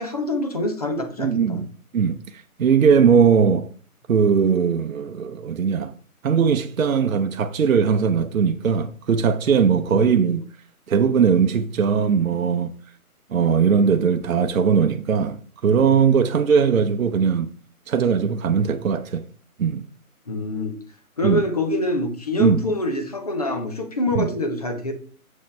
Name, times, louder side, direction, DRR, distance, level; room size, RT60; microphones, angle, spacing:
voice 1, 0.0-1.6 9.9-10.1 20.3-20.8 21.2-24.9, left 1 dB, 25° left, 0.7 m, -25 dB
voice 2, 1.2-1.7 1.9-3.7 4.1-5.9 6.2-10.4 10.9-12.7 13.3-17.5 17.9-19.2 19.6-19.8 21.2-21.4 22.4-22.6 24.1-24.3, right 6 dB, 60° right, 0.8 m, -19 dB
7.3 x 6.3 x 3.2 m
hypercardioid pair, 160°, 44 cm